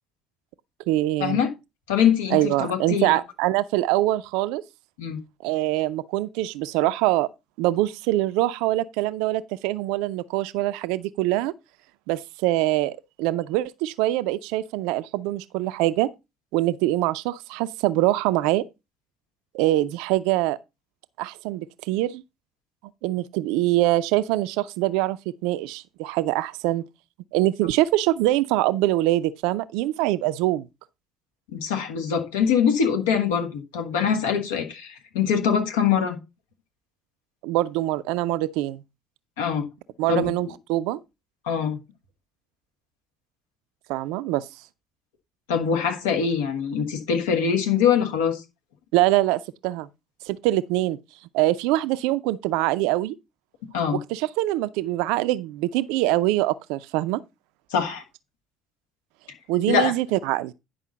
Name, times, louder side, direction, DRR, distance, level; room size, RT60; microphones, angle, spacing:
voice 1, 0.9-1.4 2.3-4.6 5.4-7.3 7.6-11.5 12.1-16.1 16.5-18.6 19.5-20.6 21.2-22.2 23.0-26.8 27.3-30.7 37.4-38.8 40.0-41.0 43.9-44.5 48.9-49.9 50.3-51.0 51.3-53.2 53.9-57.2 59.5-60.5, right 16 dB, 60° right, 0.5 m, -24 dB
voice 2, 1.9-3.1 5.0-5.2 31.5-36.2 39.4-39.7 40.1-40.3 41.4-41.8 45.5-48.4 53.7-54.0 57.7-58.0 59.7-59.9, left 7 dB, 70° left, 1.5 m, -23 dB
10.0 x 5.5 x 4.0 m
figure-of-eight pair, 55°, 0 cm